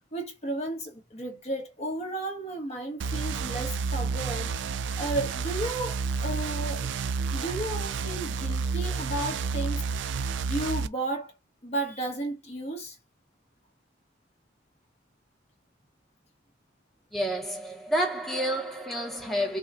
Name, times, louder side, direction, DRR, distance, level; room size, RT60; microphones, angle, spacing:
voice 1, 0.1-4.5 5.0-6.9 7.3-9.8 10.5-11.3 11.6-13.0, right 2 dB, 35° left, 1.3 m, -33 dB
sound 1, 3.0-10.9, right 4 dB, 70° right, 0.4 m, -30 dB
voice 2, 17.1-19.6, equal, ahead, 1.0 m, -29 dB
5.9 x 2.3 x 3.7 m
head